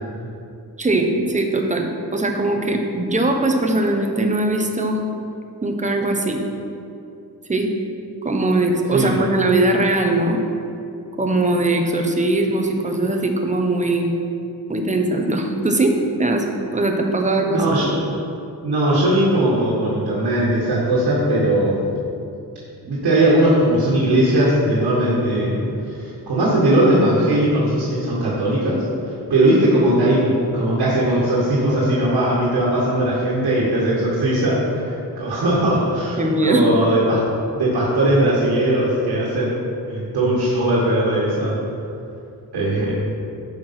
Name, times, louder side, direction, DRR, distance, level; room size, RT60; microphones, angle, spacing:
voice 1, 0.8-5.0 5.6-6.4 7.5-7.7 8.2-10.4 11.2-14.1 14.7-16.4 16.7-17.6 36.2-36.7, right 2 dB, 20° right, 3 dB, 0.9 m, -20 dB
voice 2, 17.5-18.1 18.6-21.9 22.8-37.2 37.5-39.5 39.9-41.6 42.5-43.0, right 1 dB, 85° right, -7 dB, 2.0 m, -19 dB
11.5 x 4.6 x 5.9 m, 2.7 s
wide cardioid pair, 150°, 39 cm